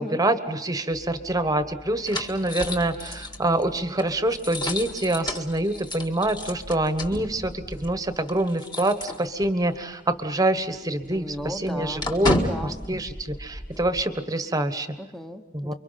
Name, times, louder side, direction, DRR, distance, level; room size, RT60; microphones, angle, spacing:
voice 1, 0.0-12.3 12.9-14.9 15.5-15.7, right 1 dB, 20° right, 10 dB, 1.3 m, -26 dB
sound 1, 0.9-9.8 10.1-10.2 10.5-14.0, left 1 dB, 20° left, 1.8 m, -33 dB
voice 2, 11.1-12.8 15.0-15.7, equal, ahead, 6 dB, 1.1 m, -36 dB
30.0 x 24.0 x 5.8 m, 1.1 s
head